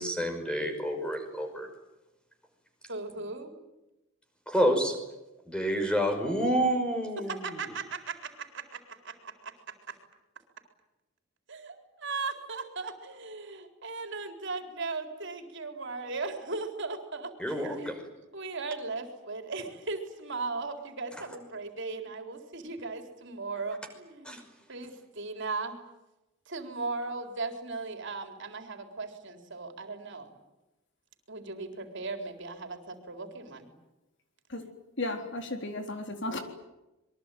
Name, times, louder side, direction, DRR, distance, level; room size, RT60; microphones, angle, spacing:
voice 1, 0.0-1.7 4.5-5.0 5.5-7.6 17.4-18.0 21.2-21.3 24.2-24.4, equal, 5° left, 6 dB, 5.5 m, -29 dB
voice 2, 2.9-3.5 7.2-9.5 9.9-10.0 11.5-18.0 18.3-24.4 24.7-25.8 26.5-30.3 31.3-33.7, right 3 dB, 60° right, 5 dB, 4.1 m, -37 dB
voice 3, 35.0-36.4, left 2 dB, 60° left, 5 dB, 3.9 m, -34 dB
26.5 x 23.0 x 9.3 m, 0.97 s
head